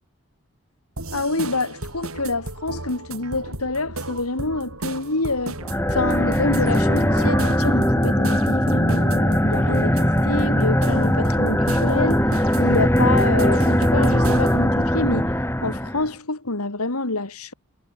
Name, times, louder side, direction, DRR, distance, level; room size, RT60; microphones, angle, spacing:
sound 1, 1.0-14.7, right 2 dB, 75° right, 7.3 m, -34 dB
voice 1, 1.1-5.6 5.9-15.3 15.6-17.5, left 2 dB, 85° left, 2.8 m, -27 dB
sound 2, 5.6-16.1, equal, 10° left, 5.2 m, -20 dB
head